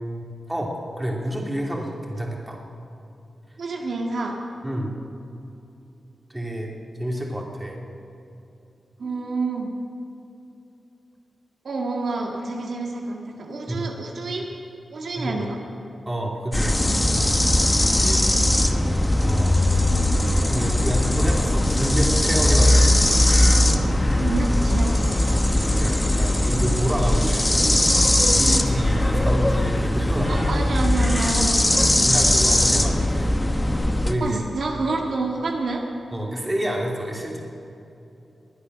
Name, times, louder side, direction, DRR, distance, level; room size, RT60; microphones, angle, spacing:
voice 1, 0.0-2.6 4.6-4.9 6.3-6.7 7.0-7.8 13.7-13.9 15.2-15.4 16.1-17.3 17.9-18.3 19.2-19.6 20.5-22.9 25.3-28.0 28.4-30.5 32.0-33.3 34.0-34.4 36.1-37.4, right 1 dB, 15° right, -1 dB, 2.7 m, -28 dB
voice 2, 3.6-4.4 9.0-9.7 11.6-14.5 14.9-15.6 24.1-25.0 30.3-31.9 34.2-35.8, right 3 dB, 70° right, 1 dB, 1.8 m, -28 dB
sound 1, 16.5-34.1, left 1 dB, 15° left, 1.1 m, -20 dB
20.0 x 9.8 x 6.3 m, 2.8 s
wide cardioid pair, 85°, 0 cm